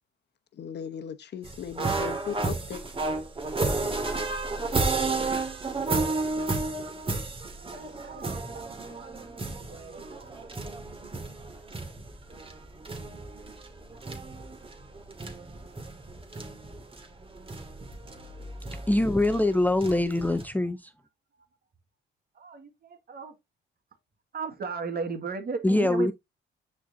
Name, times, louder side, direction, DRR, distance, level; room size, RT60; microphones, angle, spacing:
voice 1, 0.6-2.8, left 8 dB, 60° left, 1.0 m, -37 dB
sound 1, 1.4-20.4, right 3 dB, 25° right, 2.3 m, -32 dB
voice 2, 4.9-5.5 6.5-6.9 7.5-9.1 9.4-10.7 11.0-11.3 13.9-14.0 22.4-23.4 24.3-26.1, right 5 dB, 50° right, 1.9 m, -38 dB
voice 3, 18.9-20.9 25.6-26.1, left 1 dB, 10° left, 0.6 m, -23 dB
10.0 x 4.4 x 2.7 m
cardioid pair, 90°, 20 cm